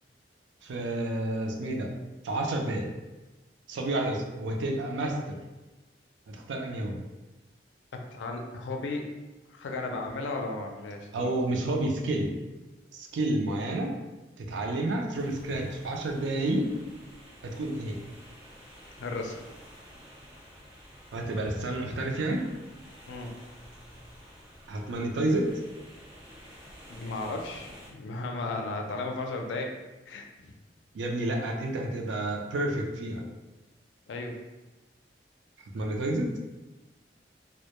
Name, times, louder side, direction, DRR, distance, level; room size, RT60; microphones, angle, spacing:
voice 1, 0.6-1.9 2.2-2.9 3.7-5.4 6.3-7.0 11.1-12.3 12.9-14.0 14.4-16.7 17.4-18.0 21.1-22.4 24.7-25.5 30.9-33.2 35.7-36.3, right 1 dB, 85° right, 1 dB, 0.4 m, -30 dB
voice 2, 7.9-9.0 9.5-11.4 19.0-19.4 23.1-23.4 26.9-29.8 30.1-30.5 34.1-34.4, left 2 dB, 85° left, 3 dB, 0.4 m, -35 dB
sound 1, 15.1-27.9, equal, 35° right, 1.0 m, -51 dB
2.1 x 2.1 x 2.9 m, 1.1 s
head